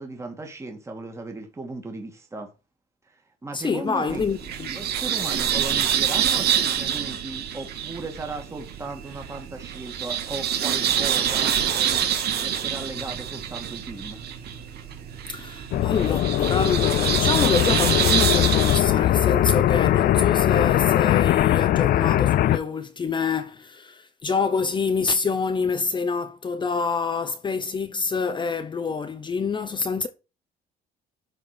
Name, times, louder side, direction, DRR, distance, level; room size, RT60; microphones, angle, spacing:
voice 1, 0.0-2.5 3.1-4.2 4.7-12.0 12.4-14.2, right 2 dB, 15° right, 2.0 m, -36 dB
voice 2, 3.5-4.7 15.3-30.1, left 5 dB, 25° left, 0.7 m, -27 dB
sound 1, 4.1-18.8, right 9 dB, 65° right, 2.1 m, -26 dB
sound 2, 15.7-22.6, left 13 dB, 60° left, 0.5 m, -20 dB
12.5 x 4.4 x 5.0 m
cardioid pair, 125°, 18 cm